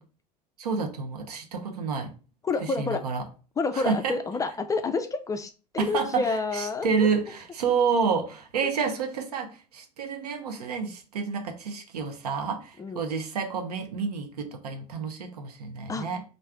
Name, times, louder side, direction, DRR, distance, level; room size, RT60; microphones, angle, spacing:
voice 1, 0.6-2.1 2.6-3.2 3.7-4.2 5.8-16.2, right 5 dB, 70° right, 0.7 m, -29 dB
voice 2, 2.4-3.0 3.6-7.1 12.8-13.1 15.9-16.1, left 4 dB, 15° left, 0.3 m, -29 dB
3.2 x 2.6 x 3.4 m
figure-of-eight pair, 75°, 21 cm